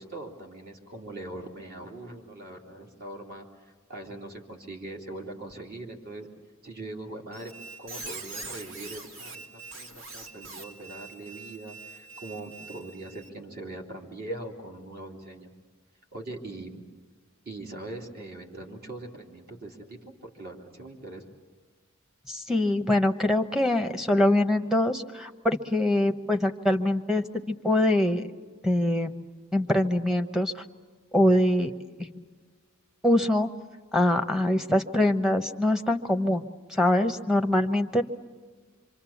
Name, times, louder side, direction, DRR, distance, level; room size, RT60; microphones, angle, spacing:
voice 1, 0.0-3.5 3.9-6.3 6.6-7.5 7.8-15.5 16.1-16.8 17.4-21.3, right 2 dB, 50° right, 1 dB, 2.9 m, -41 dB
Squeak, 7.3-13.3, right 3 dB, 90° right, 2.0 m, -43 dB
voice 2, 22.3-28.2 28.6-29.3 29.5-30.5 31.1-31.7 32.0-32.1 33.0-33.5 33.9-38.0, left 1 dB, ahead, 5 dB, 1.0 m, -24 dB
26.0 x 25.0 x 7.2 m, 1.5 s
head